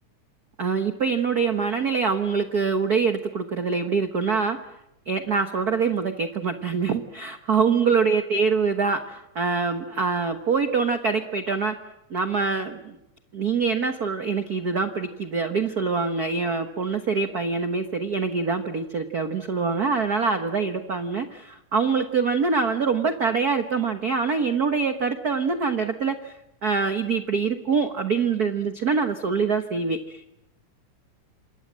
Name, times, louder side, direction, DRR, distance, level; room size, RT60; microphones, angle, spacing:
voice 1, 0.6-4.6 5.1-11.7 12.1-13.0 13.3-26.4 26.6-30.3, right 5 dB, 55° right, 7 dB, 1.0 m, -24 dB
28.0 x 22.0 x 7.5 m, 0.88 s
omnidirectional pair, 3.6 m